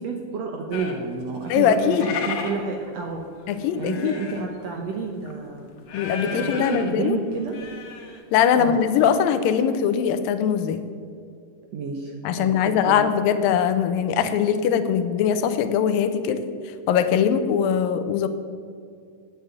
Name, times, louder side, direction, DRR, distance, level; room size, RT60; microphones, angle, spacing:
voice 1, 0.0-5.7 6.2-7.6 8.6-8.8 11.7-13.0, right 4 dB, 70° right, 2 dB, 1.6 m, -30 dB
sound 1, 0.7-4.6 5.0-5.3 5.8-6.9 7.3-8.2 8.5-8.6 8.8-9.1, left 5 dB, 65° left, 2.5 m, -35 dB
voice 2, 1.5-2.1 3.5-4.1 5.9-7.2 8.3-10.8 12.2-16.4 16.9-18.3, left 8 dB, 90° left, 10 dB, 2.4 m, -21 dB
9.0 x 8.1 x 8.1 m, 2.3 s
omnidirectional pair, 4.0 m